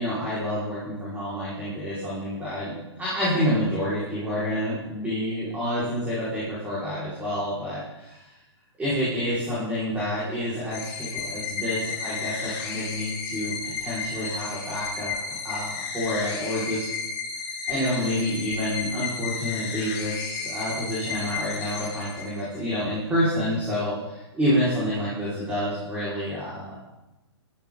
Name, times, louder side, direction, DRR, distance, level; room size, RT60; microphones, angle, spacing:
voice 1, 0.0-8.0 8.8-15.1 15.4-16.9 17.7-26.7, equal, 10° right, -10 dB, 5.5 m, -28 dB
sound 1, 10.7-22.6, left 5 dB, 40° left, 5.1 m, -33 dB
22.0 x 13.5 x 4.1 m, 1.0 s
hypercardioid pair, 155°, 15 cm